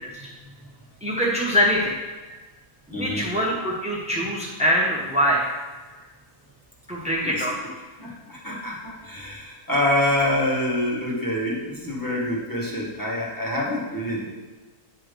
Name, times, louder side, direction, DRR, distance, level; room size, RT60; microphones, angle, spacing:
voice 1, 0.2-0.7 2.3-2.4 2.9-3.3 5.9-6.1 7.2-7.5 8.0-14.3, left 1 dB, 15° left, -5 dB, 1.3 m, -26 dB
voice 2, 1.0-1.9 2.9-5.5 6.9-7.6, equal, 10° right, -4 dB, 0.3 m, -23 dB
8.4 x 3.1 x 5.1 m, 1.2 s
omnidirectional pair, 1.6 m